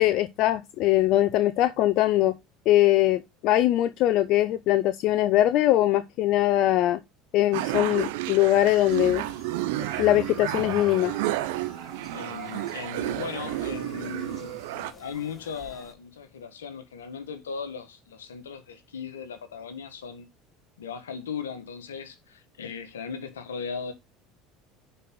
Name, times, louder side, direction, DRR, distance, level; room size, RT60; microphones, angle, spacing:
voice 1, 0.0-2.3 2.7-7.0 7.3-9.2 10.0-11.1, left 14 dB, 60° left, 0.6 m, -22 dB
sound 1, 7.5-14.9, right 15 dB, 75° right, 0.8 m, -31 dB
sound 2, 8.5-15.9, left 2 dB, 30° left, 2.9 m, -48 dB
voice 2, 12.1-20.3 20.8-23.9, left 6 dB, 85° left, 1.4 m, -37 dB
9.9 x 4.8 x 3.8 m
hypercardioid pair, 75°, 0 cm